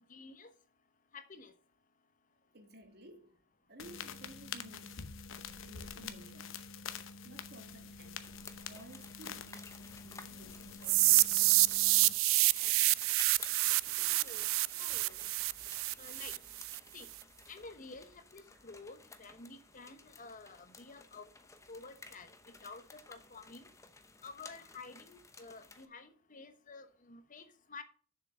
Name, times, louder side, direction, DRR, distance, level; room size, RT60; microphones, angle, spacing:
voice 1, 0.1-0.5 1.1-1.5 13.9-14.5 14.7-15.3 16.0-16.3 16.9-17.1 17.5-21.3 21.7-22.3 22.6-23.7 24.2-27.8, left 4 dB, 40° left, 1.0 m, -51 dB
voice 2, 2.5-3.4 3.7-5.1 5.6-6.6 7.2-11.6 15.2-15.3, right 1 dB, 55° right, 1.6 m, -55 dB
sound 1, 3.8-12.1, left 6 dB, 70° left, 0.9 m, -46 dB
sound 2, 8.2-25.9, left 4 dB, 15° left, 0.8 m, -55 dB
sound 3, 10.8-16.8, right 20 dB, 75° right, 0.3 m, -28 dB
7.0 x 6.7 x 6.1 m
head